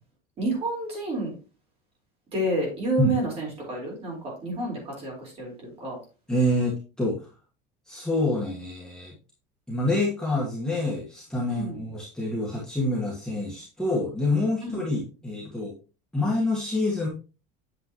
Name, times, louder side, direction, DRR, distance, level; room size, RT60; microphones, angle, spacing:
voice 1, 0.4-1.3 2.3-6.0 11.5-11.8 14.6-14.8, right 2 dB, 30° right, -2 dB, 4.4 m, -29 dB
voice 2, 6.3-7.3 7.9-9.2 9.7-15.7 16.1-17.1, left 1 dB, 5° left, -5 dB, 1.5 m, -27 dB
8.3 x 7.2 x 3.0 m, 0.33 s
cardioid pair, 170°, 20 cm